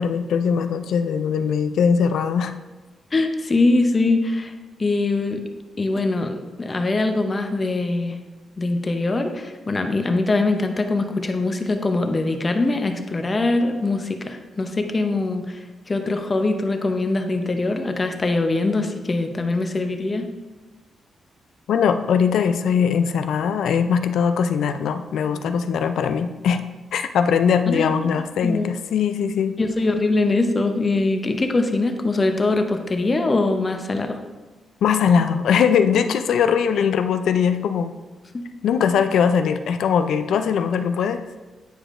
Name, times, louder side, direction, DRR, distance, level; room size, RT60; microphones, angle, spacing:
voice 1, 0.0-2.5 21.7-26.6 26.9-29.5 34.8-37.9 38.6-41.2, left 7 dB, 85° left, 9 dB, 0.4 m, -20 dB
voice 2, 3.1-4.5 4.8-5.4 5.8-8.2 8.6-15.6 15.9-20.3 27.7-27.9 28.4-28.7 29.6-34.2 38.3-38.4, left 2 dB, 25° left, 5 dB, 0.6 m, -22 dB
9.2 x 4.9 x 2.5 m, 1.2 s
cardioid pair, 125°, 0 cm